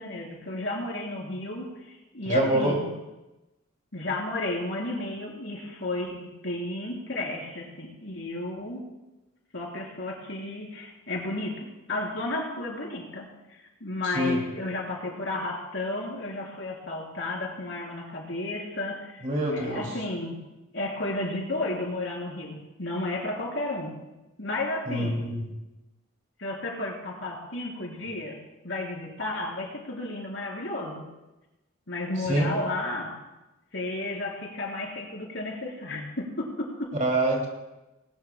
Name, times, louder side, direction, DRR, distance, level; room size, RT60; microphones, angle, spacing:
voice 1, 0.0-2.9 3.9-8.8 9.5-20.4 20.7-24.0 24.4-25.2 26.4-28.4 28.6-31.0 31.9-33.1 33.7-36.9, left 2 dB, 60° left, -1 dB, 3.6 m, -33 dB
voice 2, 2.3-2.7 14.1-14.4 19.2-19.8 24.9-25.4 32.3-32.5 37.0-37.5, right 1 dB, 35° right, 0 dB, 2.4 m, -25 dB
19.5 x 19.0 x 2.2 m, 1.0 s
head